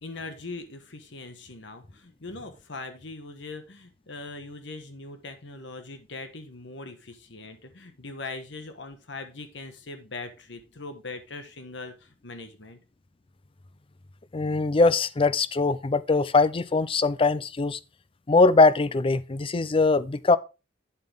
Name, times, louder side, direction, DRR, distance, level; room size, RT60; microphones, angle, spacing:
voice 1, 0.0-12.8, left 3 dB, 65° left, 1.3 m, -41 dB
voice 2, 14.3-17.8 18.3-20.4, left 3 dB, 30° left, 0.5 m, -21 dB
8.9 x 7.6 x 3.4 m
head